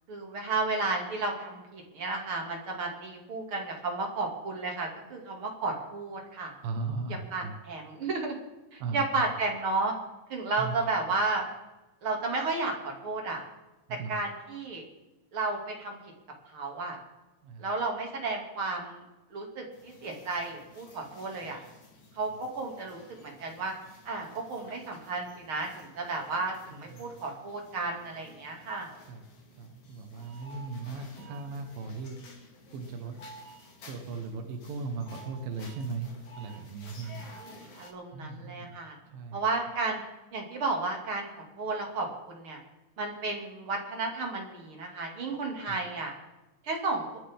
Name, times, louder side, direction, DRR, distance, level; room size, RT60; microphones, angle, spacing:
voice 1, 0.1-6.5 7.3-8.3 8.7-9.9 10.3-11.4 12.0-13.4 13.9-14.8 15.3-16.1 16.5-17.0 17.6-19.0 19.3-21.6 22.1-23.7 24.0-28.9 37.0-39.0 39.3-40.0 40.3-42.6 43.0-46.1 46.6-47.1, right 3 dB, 35° right, 1 dB, 3.1 m, -33 dB
voice 2, 6.6-7.5 8.8-9.0 10.6-10.7 13.9-14.1 17.4-17.7 21.4-21.5 26.7-27.1 29.1-29.2 29.6-32.2 32.7-33.2 33.9-37.3 38.1-38.8 39.1-39.4 45.7-45.8, right 4 dB, 70° right, 3 dB, 3.1 m, -37 dB
sound 1, 19.7-37.9, left 1 dB, 55° left, 3.7 m, -53 dB
28.5 x 10.5 x 3.8 m, 1.1 s
omnidirectional pair, 4.3 m